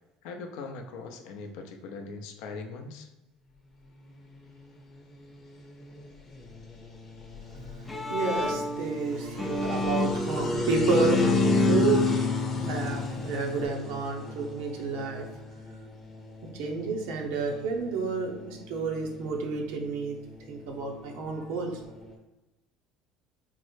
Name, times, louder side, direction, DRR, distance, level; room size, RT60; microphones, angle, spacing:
voice 1, 0.2-3.1, left 4 dB, 75° left, 4 dB, 0.4 m, -40 dB
sound 1, 4.1-22.2, left 2 dB, 40° left, 0.9 m, -35 dB
Bowed string instrument, 7.6-13.7, left 3 dB, 10° left, 0.4 m, -29 dB
voice 2, 8.1-15.3 16.5-20.2 20.5-21.9, right 4 dB, 75° right, 1 dB, 0.6 m, -31 dB
3.7 x 2.1 x 3.1 m, 1.0 s
hypercardioid pair, 80°, 0 cm